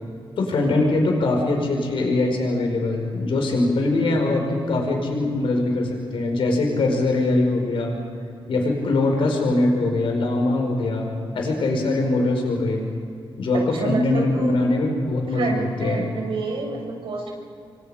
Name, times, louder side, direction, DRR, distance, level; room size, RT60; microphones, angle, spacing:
voice 1, 0.4-8.0 8.5-12.8 13.4-16.1, left 2 dB, 75° left, 2 dB, 5.3 m, -22 dB
voice 2, 13.7-14.6 15.3-17.4, right 4 dB, 75° right, 1 dB, 6.3 m, -28 dB
27.5 x 24.0 x 5.2 m, 2.4 s
cardioid pair, 90°, 9 cm